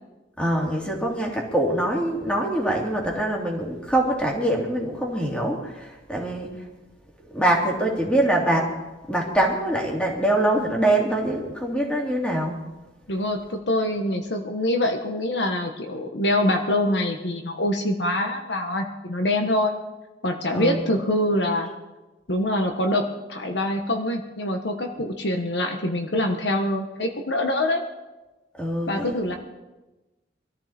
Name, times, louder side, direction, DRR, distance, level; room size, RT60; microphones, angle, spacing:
voice 1, 0.4-6.6 7.3-8.7 9.1-12.6 20.5-20.8 28.5-29.2, right 1 dB, 5° left, -1 dB, 3.1 m, -24 dB
voice 2, 13.1-19.7 20.2-21.7 22.3-23.0 23.3-27.8 28.9-29.4, left 1 dB, 70° left, 4 dB, 1.5 m, -24 dB
24.0 x 13.5 x 4.4 m, 1.1 s
head